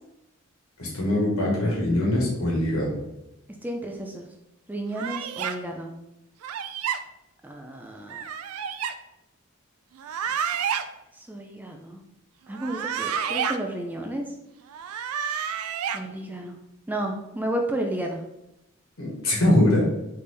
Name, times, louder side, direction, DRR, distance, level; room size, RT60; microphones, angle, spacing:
voice 1, 0.8-3.0 19.0-19.9, left 1 dB, 80° left, -3 dB, 1.6 m, -22 dB
voice 2, 3.6-4.3 4.7-5.9 7.4-8.2 11.2-12.0 12.5-14.3 15.9-16.6 16.9-18.2, right 1 dB, 10° right, 2 dB, 0.3 m, -32 dB
sound 1, 4.9-5.6 6.4-7.0 8.1-8.9 10.0-10.8 12.5-13.6 14.7-16.0, right 7 dB, 85° right, 0.4 m, -29 dB
4.1 x 3.4 x 3.4 m, 0.89 s
head